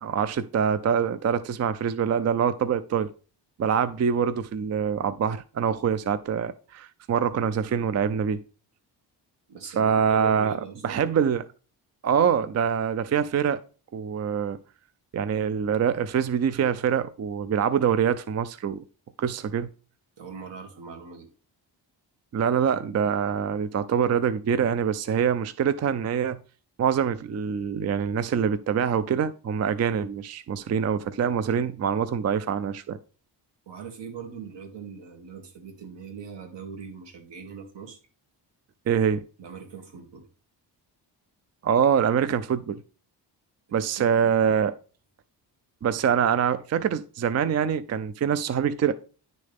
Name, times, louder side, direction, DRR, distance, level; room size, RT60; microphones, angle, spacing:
voice 1, 0.0-3.1 3.6-8.4 9.8-10.6 10.8-11.4 12.0-13.6 13.9-14.6 15.1-18.8 19.2-19.7 22.3-26.4 26.8-33.0 38.9-39.2 41.6-42.8 43.7-44.7 45.8-48.9, right 7 dB, 40° right, 0.5 m, -24 dB
voice 2, 9.5-11.0 20.2-21.3 33.7-38.0 39.4-40.3, right 6 dB, 80° right, 2.6 m, -41 dB
10.5 x 6.6 x 3.5 m
wide cardioid pair, 160°, 42 cm